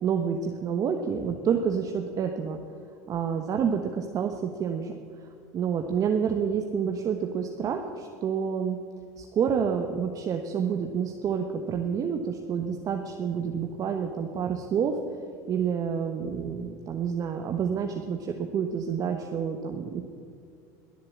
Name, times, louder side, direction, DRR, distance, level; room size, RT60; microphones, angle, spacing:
voice 1, 0.0-2.6 3.1-5.0 5.5-8.8 9.2-15.0 15.5-20.0, right 7 dB, 40° right, 4 dB, 1.2 m, -28 dB
21.5 x 7.6 x 8.5 m, 2.2 s
supercardioid pair, 105°, 9 cm